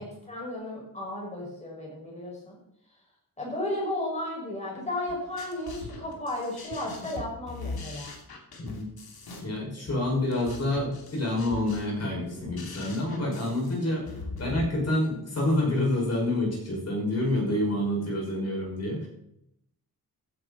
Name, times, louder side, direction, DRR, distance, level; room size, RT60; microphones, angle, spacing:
voice 1, 0.0-2.5 3.4-8.1, left 1 dB, 20° left, -3 dB, 6.0 m, -34 dB
sound 1, 5.1-14.7, left 3 dB, 75° left, 3.0 m, -41 dB
voice 2, 9.4-19.1, left 1 dB, 45° left, -2 dB, 5.9 m, -28 dB
15.5 x 10.5 x 4.3 m, 0.77 s
wide cardioid pair, 180°, 37 cm